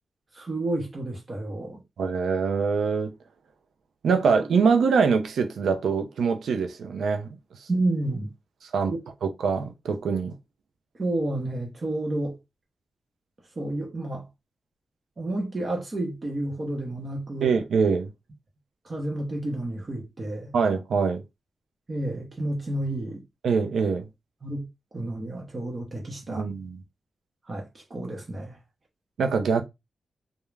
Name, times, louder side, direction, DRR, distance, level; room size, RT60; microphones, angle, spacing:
voice 1, 0.3-1.8 7.7-8.3 8.9-9.0 11.0-12.4 13.6-14.3 15.2-17.5 18.8-20.5 21.9-23.2 24.4-24.7 24.9-26.4 27.5-28.6, right 1 dB, 40° right, 0.7 m, -30 dB
voice 2, 2.0-3.1 4.0-7.3 8.7-8.9 9.2-10.3 17.4-18.1 20.5-21.2 23.4-24.0 26.3-26.8 29.2-29.6, right 5 dB, 85° right, 0.5 m, -24 dB
2.3 x 2.1 x 3.2 m
cardioid pair, 95°, 0 cm